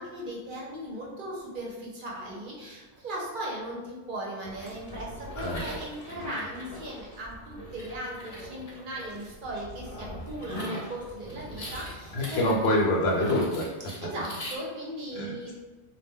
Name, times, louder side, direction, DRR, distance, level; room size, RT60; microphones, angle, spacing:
voice 1, 0.0-12.4 14.0-15.5, right 1 dB, 55° right, -3 dB, 0.7 m, -38 dB
sound 1, 4.4-14.6, equal, 45° left, 0.6 m, -40 dB
voice 2, 12.1-13.7 15.1-15.3, left 1 dB, 70° left, -2 dB, 0.9 m, -25 dB
2.1 x 2.1 x 3.5 m, 1.3 s
omnidirectional pair, 1.1 m